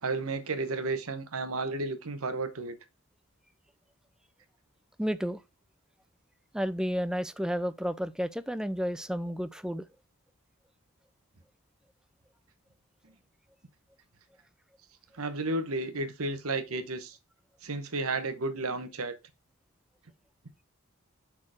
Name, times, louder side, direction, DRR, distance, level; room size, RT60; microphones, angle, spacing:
voice 1, 0.0-2.8 15.1-17.2 17.6-19.2, right 3 dB, 80° right, 1.0 m, -32 dB
voice 2, 5.0-5.4 6.5-9.9, equal, 5° right, 0.4 m, -31 dB
5.8 x 4.4 x 4.7 m
head